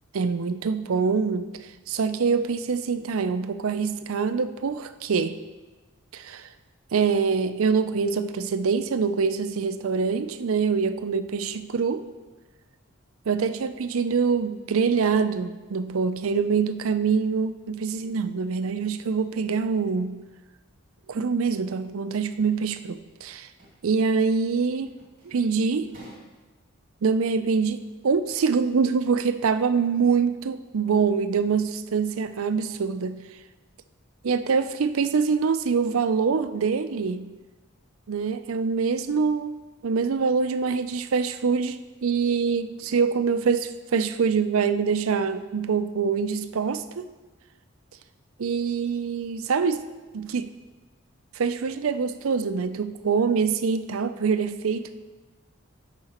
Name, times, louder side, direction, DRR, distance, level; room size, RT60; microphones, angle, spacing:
voice 1, 0.1-5.4 6.1-6.5 6.9-12.0 13.3-20.2 21.1-23.5 23.8-24.9 25.2-25.9 27.0-33.2 34.2-37.3 38.1-47.1 48.4-49.9 50.1-50.5 51.3-55.0, right 5 dB, 85° right, 11 dB, 0.5 m, -25 dB
sound 1, 22.3-22.6 23.1-23.2 23.5-23.8 24.0-24.3 24.9-25.4 25.8-26.4, right 1 dB, 40° right, 2.6 m, -50 dB
12.0 x 5.0 x 4.3 m, 1.2 s
head